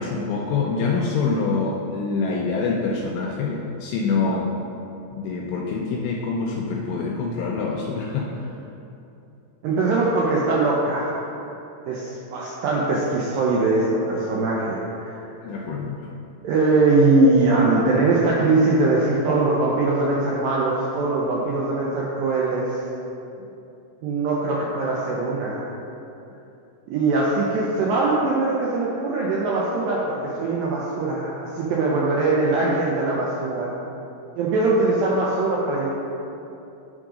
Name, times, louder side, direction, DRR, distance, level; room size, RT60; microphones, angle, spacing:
voice 1, 0.0-4.5 5.1-8.4 15.4-16.0, left 4 dB, 85° left, 0 dB, 2.2 m, -25 dB
voice 2, 9.6-11.2 11.9-15.2 16.4-22.8 24.0-25.6 26.9-33.8 34.4-35.9, right 3 dB, 85° right, -4 dB, 2.0 m, -21 dB
9.6 x 3.7 x 5.0 m, 2.8 s
omnidirectional pair, 4.8 m